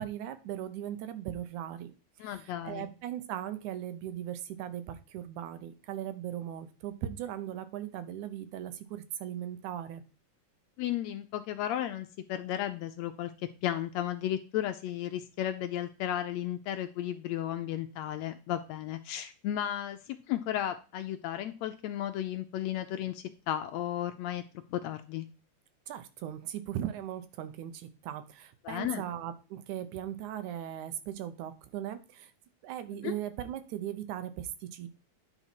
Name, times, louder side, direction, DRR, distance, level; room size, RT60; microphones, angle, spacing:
voice 1, 0.0-1.9 2.2-10.0 25.9-32.3 32.6-34.9, right 11 dB, 80° right, 10 dB, 2.2 m, -38 dB
voice 2, 2.2-2.9 10.8-13.3 13.6-24.4 24.7-25.2 28.6-29.0 33.0-33.1, left 11 dB, 75° left, 9 dB, 1.7 m, -34 dB
10.0 x 4.0 x 4.5 m, 0.34 s
omnidirectional pair, 3.5 m